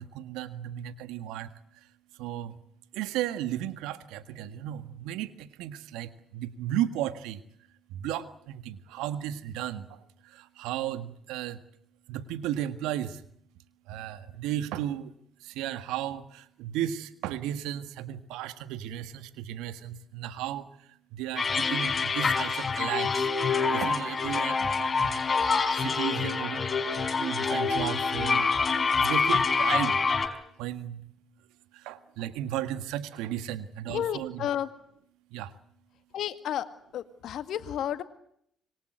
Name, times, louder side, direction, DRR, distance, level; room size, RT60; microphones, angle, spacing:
voice 1, 0.0-1.9 2.2-2.6 2.9-7.4 7.9-11.6 12.1-13.2 13.9-15.1 15.4-23.3 23.6-28.6 29.0-30.0 30.6-31.1 31.7-34.5 35.3-35.5, right 12 dB, 80° right, 12 dB, 1.7 m, -35 dB
sound 1, 21.4-30.3, left 4 dB, 40° left, 4.3 m, -26 dB
voice 2, 33.9-34.7 36.1-36.7 36.9-38.0, left 10 dB, 65° left, 11 dB, 1.9 m, -31 dB
26.0 x 23.0 x 7.9 m, 0.72 s
hypercardioid pair, 50°, 0 cm